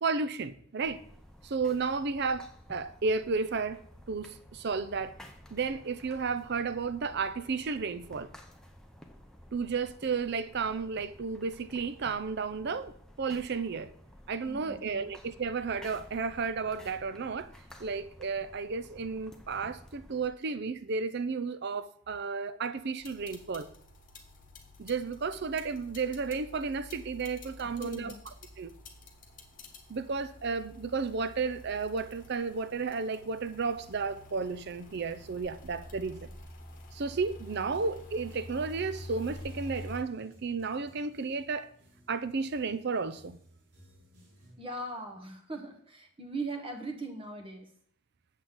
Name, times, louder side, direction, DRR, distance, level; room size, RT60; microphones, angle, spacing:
voice 1, 0.0-1.0 1.4-3.8 4.1-5.2 5.5-8.3 9.5-13.9 14.3-17.5 17.8-23.7 24.8-28.1 28.6-28.7 29.9-36.3 36.9-41.7 42.1-43.4, right 4 dB, 50° right, 0.5 m, -33 dB
sound 1, 0.8-20.3, equal, 5° left, 0.7 m, -53 dB
voice 2, 14.5-15.1 27.6-28.2 44.6-47.7, right 2 dB, 25° right, 1.1 m, -40 dB
sound 2, 23.0-40.0, left 1 dB, 35° left, 1.2 m, -48 dB
sound 3, 37.2-44.5, equal, 85° right, 2.7 m, -60 dB
8.2 x 7.3 x 3.8 m
head